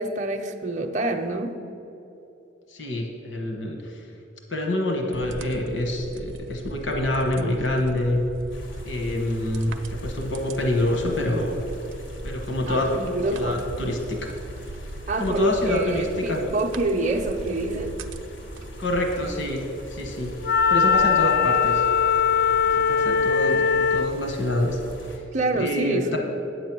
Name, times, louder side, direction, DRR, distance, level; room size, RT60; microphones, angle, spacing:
voice 1, 0.0-1.5 12.7-13.6 15.1-17.9 25.3-26.2, right 2 dB, 40° right, 3 dB, 0.6 m, -26 dB
voice 2, 2.7-4.0 4.5-8.2 8.8-11.6 12.2-12.9 13.3-14.3 15.2-16.4 18.8-20.3 20.7-21.8 22.8-24.8 25.5-26.2, left 1 dB, 70° left, 2 dB, 1.3 m, -26 dB
sound 1, 5.1-21.0, right 2 dB, 90° right, 0.6 m, -40 dB
sound 2, 8.5-25.2, equal, 90° left, 1.5 m, -42 dB
Wind instrument woodwind instrument, 20.4-24.2, left 6 dB, 50° left, 0.3 m, -20 dB
9.1 x 7.5 x 6.1 m, 3.0 s
head